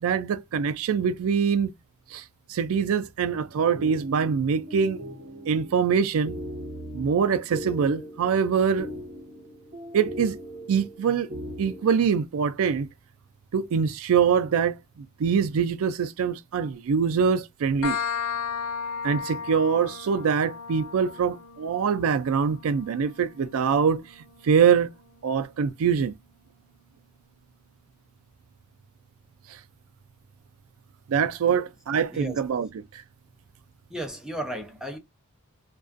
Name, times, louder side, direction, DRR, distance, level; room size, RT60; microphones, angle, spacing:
voice 1, 0.0-1.7 2.1-2.2 2.5-5.0 5.5-6.4 6.9-8.9 9.9-10.4 10.7-11.3 11.6-12.9 13.5-18.0 19.0-24.0 24.4-24.9 25.2-26.1 29.5-29.6 31.1-32.7, right 6 dB, 70° right, 0.4 m, -24 dB
sound 1, 3.5-12.0, equal, 40° right, 1.0 m, -39 dB
sound 2, 17.8-25.2, left 6 dB, 80° left, 0.4 m, -36 dB
voice 2, 33.9-35.0, right 1 dB, 5° right, 0.5 m, -34 dB
2.4 x 2.3 x 2.4 m
head